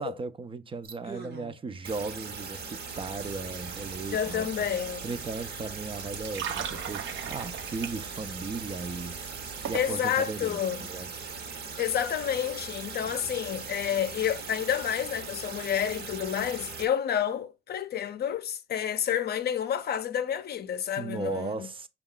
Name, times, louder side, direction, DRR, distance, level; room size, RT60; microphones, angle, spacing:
voice 1, 0.0-4.5 5.0-11.1 13.3-13.4 21.0-21.9, right 4 dB, 25° right, 0.4 m, -37 dB
sound 1, 0.8-1.5 1.8-16.9, right 5 dB, 55° right, 1.0 m, -40 dB
sound 2, 2.9-9.8, right 8 dB, 70° right, 0.6 m, -41 dB
voice 2, 4.1-5.1 9.7-10.9 11.8-21.7, left 9 dB, 55° left, 0.6 m, -29 dB
5.3 x 2.4 x 3.7 m
cardioid pair, 90°, 20 cm